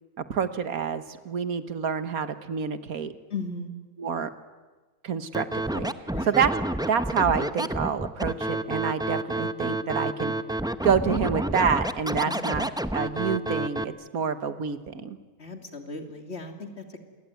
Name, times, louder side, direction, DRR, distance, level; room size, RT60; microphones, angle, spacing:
voice 1, 0.3-3.1 4.0-4.3 5.0-5.9 6.3-6.5 6.9-10.3 10.8-15.2, right 6 dB, 75° right, 11 dB, 1.7 m, -27 dB
voice 2, 3.3-3.7 6.1-6.4 12.2-12.5 15.4-17.0, left 3 dB, 45° left, 5 dB, 2.8 m, -36 dB
Scratching (performance technique), 5.3-13.8, right 1 dB, 5° right, 0.4 m, -29 dB
28.0 x 21.0 x 9.3 m, 1.3 s
omnidirectional pair, 1.5 m